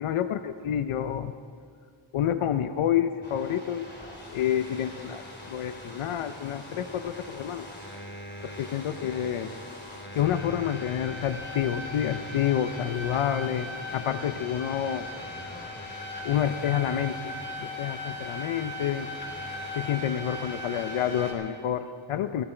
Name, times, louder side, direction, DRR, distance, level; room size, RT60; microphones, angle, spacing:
voice 1, 0.0-1.3 2.1-3.9 4.3-7.7 8.4-9.6 10.1-15.1 16.2-19.1 19.7-22.4, left 10 dB, 85° left, 10 dB, 0.7 m, -28 dB
sound 1, 3.2-21.3, left 1 dB, 20° left, 2.9 m, -39 dB
20.0 x 15.5 x 4.4 m, 2.2 s
wide cardioid pair, 130°, 49 cm